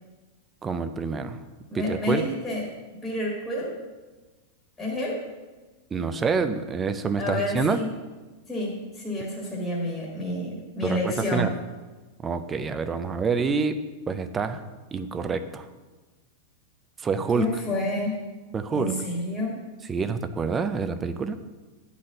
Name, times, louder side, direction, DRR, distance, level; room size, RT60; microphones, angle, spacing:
voice 1, 0.6-1.4 1.7-2.2 5.9-7.8 10.8-11.5 12.2-13.8 14.1-14.6 14.9-15.7 17.0-17.5 18.5-18.9 19.9-21.4, right 5 dB, 10° right, 10 dB, 0.4 m, -27 dB
voice 2, 1.7-2.6 3.0-3.8 4.8-5.2 7.2-7.9 8.5-11.5 17.3-18.2 18.7-19.6, left 1 dB, 5° left, -4 dB, 1.7 m, -29 dB
10.5 x 4.1 x 7.6 m, 1.2 s
supercardioid pair, 175°, 0 cm